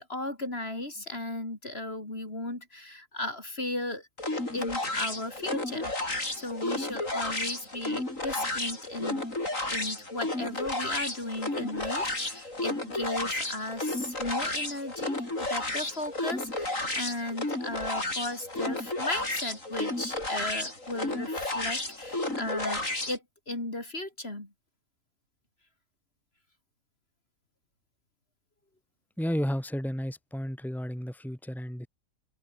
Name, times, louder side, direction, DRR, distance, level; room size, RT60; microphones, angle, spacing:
voice 1, 0.0-4.1 4.5-5.9 6.3-9.2 9.7-24.5, left 1 dB, 40° left, 4.9 m, -36 dB
sound 1, 4.2-23.2, left 2 dB, 60° left, 6.9 m, -32 dB
voice 2, 29.2-31.9, equal, ahead, 3.5 m, -32 dB
open air
omnidirectional pair, 1.5 m